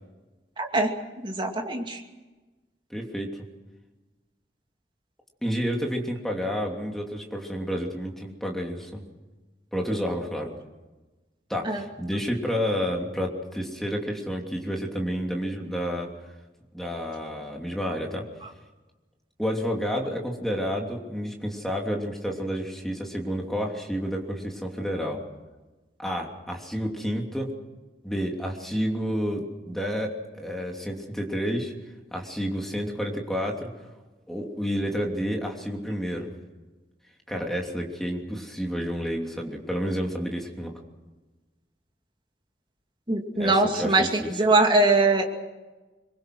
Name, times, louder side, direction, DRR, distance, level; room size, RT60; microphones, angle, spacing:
voice 1, 0.6-0.9 1.2-2.0 11.6-11.8 43.1-45.2, right 2 dB, 30° right, 2 dB, 2.6 m, -22 dB
voice 2, 2.9-3.4 5.4-9.0 9.7-10.5 11.5-16.1 16.7-18.3 19.4-25.2 26.0-27.5 28.0-31.7 32.1-33.7 34.3-36.3 37.3-40.7 43.4-44.3, equal, ahead, 0 dB, 3.0 m, -30 dB
25.5 x 22.5 x 6.2 m, 1.2 s
head